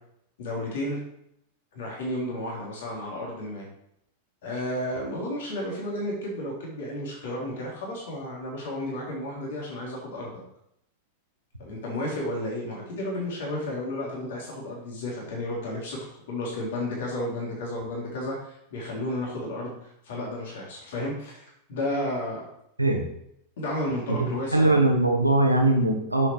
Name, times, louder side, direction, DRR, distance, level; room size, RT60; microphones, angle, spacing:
voice 1, 0.4-1.0 1.7-3.6 4.4-10.3 11.6-16.0 16.3-22.4 23.6-24.8, left 1 dB, 55° left, -3 dB, 3.3 m, -32 dB
voice 2, 24.1-26.3, right 2 dB, 85° right, 3 dB, 1.6 m, -21 dB
8.6 x 7.2 x 4.7 m, 0.76 s
figure-of-eight pair, 90°, 0 cm